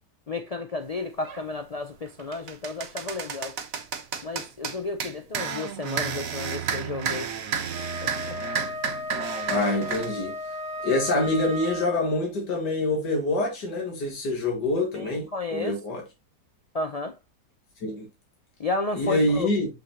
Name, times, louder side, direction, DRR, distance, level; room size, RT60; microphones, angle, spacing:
voice 1, 0.3-3.6 4.2-7.3 8.0-8.4 14.9-15.8 16.7-17.1 18.6-19.5, left 3 dB, 65° left, 0.3 m, -32 dB
sound 1, 1.2-1.4 1.9-10.1, right 7 dB, 60° right, 1.4 m, -32 dB
Wind instrument woodwind instrument, 7.7-12.3, left 1 dB, 10° right, 2.2 m, -35 dB
voice 2, 9.5-10.3 10.8-16.0 17.8-18.1 18.9-19.7, left 2 dB, 80° left, 2.6 m, -26 dB
7.3 x 6.0 x 2.9 m
omnidirectional pair, 1.8 m